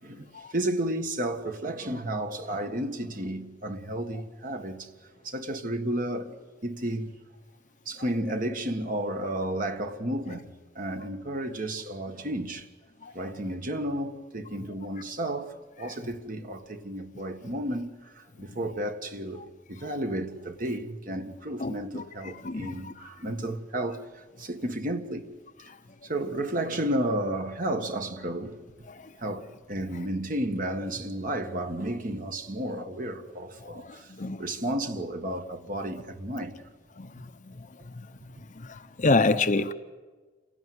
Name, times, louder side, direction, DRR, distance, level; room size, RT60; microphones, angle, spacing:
voice 1, 0.0-4.9 5.2-6.4 6.6-7.2 7.9-10.5 10.8-12.7 13.1-19.4 19.7-25.3 26.0-28.6 29.2-34.1 34.4-36.6, right 1 dB, 50° right, 1.6 m, -32 dB
voice 2, 21.6-22.0 22.4-22.7 34.2-34.4 37.0-37.1 37.9-38.1 39.0-39.7, left 3 dB, 45° left, 0.8 m, -25 dB
28.0 x 17.0 x 9.5 m
head